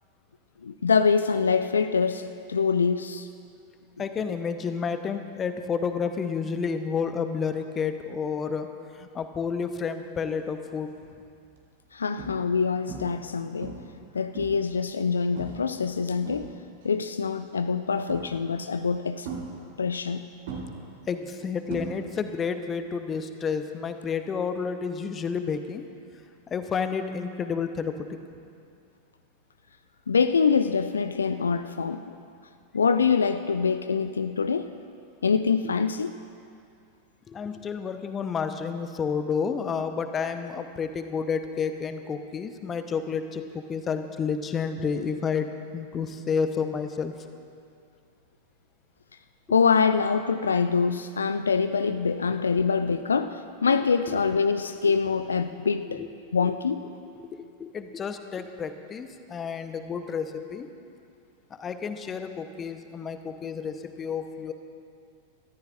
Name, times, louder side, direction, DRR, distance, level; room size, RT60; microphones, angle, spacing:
voice 1, 0.6-3.3 11.9-13.8 14.1-16.5 16.8-19.3 19.8-20.3 30.1-32.1 32.7-34.7 35.2-36.1 49.5-56.0 56.3-56.8, left 5 dB, 70° left, 10 dB, 0.4 m, -25 dB
voice 2, 4.0-8.7 9.0-10.9 21.1-25.8 26.5-28.1 37.3-45.5 45.7-47.1 53.7-53.8 54.1-54.2 55.9-56.1 56.4-56.5 57.1-60.7 61.5-64.5, left 6 dB, 25° left, 8 dB, 0.9 m, -30 dB
sound 1, 10.5-10.9 11.4-11.6 12.2-12.6 12.9-13.3 13.6-14.7 15.4-15.7 16.0-16.9 18.1-18.6 19.2-20.1 20.5-22.4 22.6-23.0 25.1-25.2, right 4 dB, 55° right, 2.4 m, -39 dB
23.0 x 14.0 x 2.5 m, 2.4 s
figure-of-eight pair, 90°, 0 cm